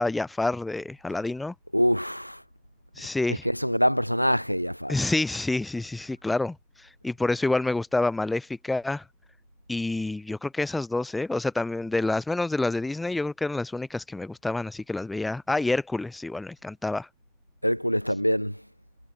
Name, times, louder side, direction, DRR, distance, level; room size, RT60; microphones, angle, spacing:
voice 1, 0.0-1.5 3.0-3.4 4.9-6.6 7.0-9.0 9.7-17.1, left 2 dB, 5° left, 0.3 m, -28 dB
voice 2, 1.7-2.4 3.3-5.0 17.6-18.6, equal, 90° left, 0.3 m, -25 dB
figure-of-eight pair, 90°, 0 cm